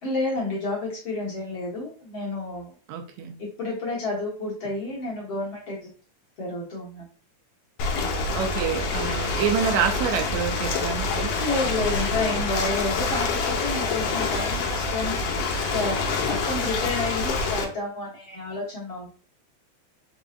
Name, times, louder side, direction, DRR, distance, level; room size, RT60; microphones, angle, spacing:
voice 1, 0.0-2.7 3.4-5.9 6.4-7.1 11.4-15.2 15.7-19.1, left 2 dB, 55° left, -5 dB, 1.7 m, -30 dB
voice 2, 2.9-3.4 8.3-11.3, right 7 dB, 80° right, 5 dB, 1.9 m, -27 dB
Ocean, 7.8-17.6, left 3 dB, 75° left, 1.8 m, -26 dB
5.0 x 3.6 x 2.5 m, 0.38 s
omnidirectional pair, 3.3 m